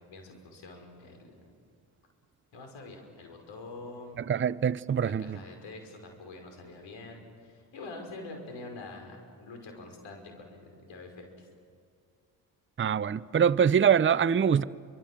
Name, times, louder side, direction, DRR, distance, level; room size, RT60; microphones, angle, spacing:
voice 1, 0.1-1.4 2.5-4.3 5.0-11.5, left 2 dB, 70° left, 5.7 m, -45 dB
voice 2, 4.3-5.4 12.8-14.6, right 7 dB, 25° right, 0.7 m, -24 dB
29.0 x 25.0 x 7.6 m
hypercardioid pair, 50°, 47 cm